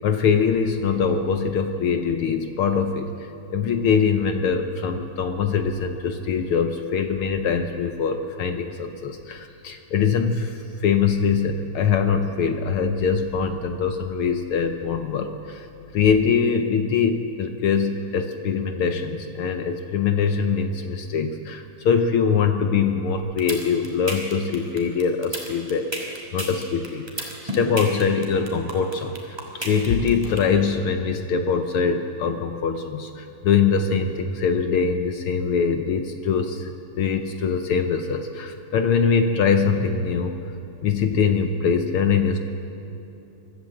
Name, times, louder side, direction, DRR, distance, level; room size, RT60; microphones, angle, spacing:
voice 1, 0.0-15.7 15.9-36.7 37.0-40.3 40.8-42.4, left 6 dB, 75° left, 7 dB, 1.3 m, -23 dB
sound 1, 23.2-30.4, right 1 dB, 10° right, 2.8 m, -31 dB
24.5 x 13.5 x 7.8 m, 2.9 s
omnidirectional pair, 3.4 m